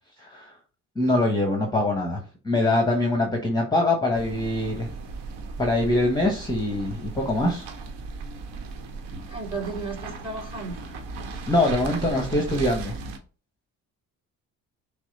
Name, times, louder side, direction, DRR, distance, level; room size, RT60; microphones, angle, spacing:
voice 1, 0.2-0.5 1.0-4.9 5.6-7.7 11.5-13.0, left 2 dB, 10° left, 1.1 m, -23 dB
sound 1, 4.1-13.2, right 4 dB, 65° right, 0.9 m, -37 dB
voice 2, 9.3-10.9, right 3 dB, 10° right, 1.7 m, -34 dB
6.0 x 2.1 x 4.0 m
hypercardioid pair, 45°, 46 cm